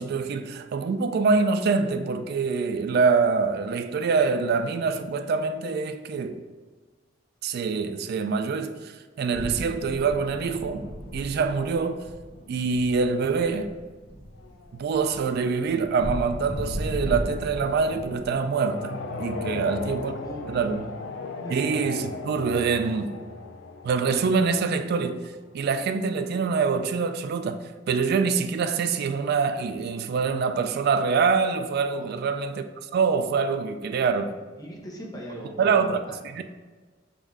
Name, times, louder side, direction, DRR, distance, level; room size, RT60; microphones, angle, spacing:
voice 1, 0.0-6.4 7.4-10.8 11.1-12.1 12.5-13.7 14.7-20.1 20.5-20.9 21.5-23.2 23.8-32.6 32.9-34.3 35.6-36.0 36.3-36.4, right 5 dB, 55° right, 0.3 m, -25 dB
sound 1, 9.3-18.3, equal, 35° right, 0.9 m, -36 dB
sound 2, 14.4-25.2, left 3 dB, 70° left, 0.4 m, -38 dB
voice 2, 19.4-20.9 21.4-21.7 31.9-32.3 34.6-36.2, equal, 20° left, 0.7 m, -41 dB
3.9 x 2.6 x 4.7 m
head